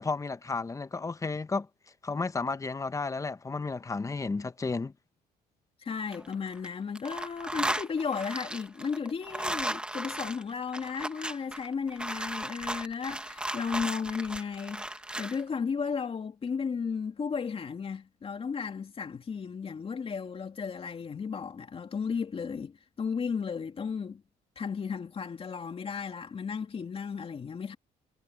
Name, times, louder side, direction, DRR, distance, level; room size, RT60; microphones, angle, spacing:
voice 1, 0.0-1.7 2.0-4.9, left 4 dB, 20° left, 0.9 m, -32 dB
voice 2, 5.8-24.2 24.6-27.8, left 6 dB, 35° left, 2.7 m, -34 dB
sound 1, 5.9-6.7 6.9-15.4, right 1 dB, 5° right, 1.6 m, -36 dB
cardioid pair, 110°, 17 cm